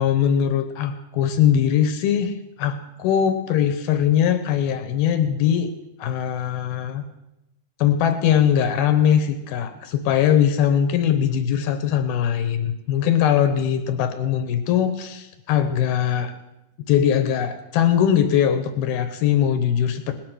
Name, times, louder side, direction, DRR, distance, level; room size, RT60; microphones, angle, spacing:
voice 1, 0.0-5.7 6.0-7.0 7.8-16.3 16.9-20.1, left 9 dB, 75° left, 8 dB, 2.4 m, -21 dB
19.0 x 10.5 x 6.1 m, 0.92 s
omnidirectional pair, 5.0 m